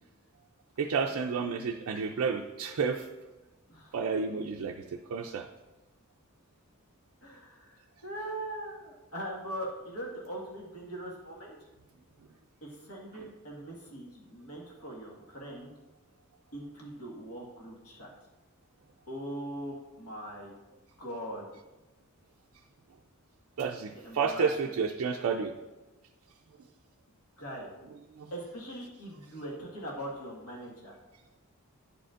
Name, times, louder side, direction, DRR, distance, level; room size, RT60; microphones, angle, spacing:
voice 1, 0.8-3.1 3.9-5.5 13.1-13.2 23.6-25.6 28.2-28.3, right 5 dB, 65° right, 3 dB, 0.4 m, -31 dB
voice 2, 7.2-11.5 12.6-15.7 16.5-18.1 19.1-20.5 21.0-21.5 24.0-24.5 27.4-27.7 28.3-30.9, right 1 dB, 80° left, -3 dB, 1.6 m, -41 dB
10.0 x 5.0 x 2.5 m, 1.1 s
head